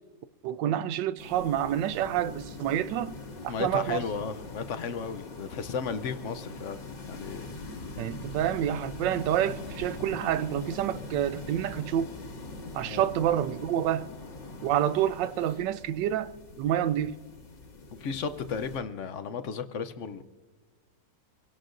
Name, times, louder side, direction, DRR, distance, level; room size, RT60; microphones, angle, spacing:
voice 1, 0.4-3.1 3.4-4.0 8.0-12.1 12.7-14.1 14.6-17.2, right 11 dB, 85° right, 1.3 m, -28 dB
sound 1, 1.2-18.8, left 2 dB, 80° left, 2.5 m, -42 dB
voice 2, 3.5-6.8 7.1-7.5 12.8-13.1 18.0-20.2, left 6 dB, 60° left, 0.8 m, -34 dB
26.5 x 17.0 x 2.6 m
omnidirectional pair, 1.9 m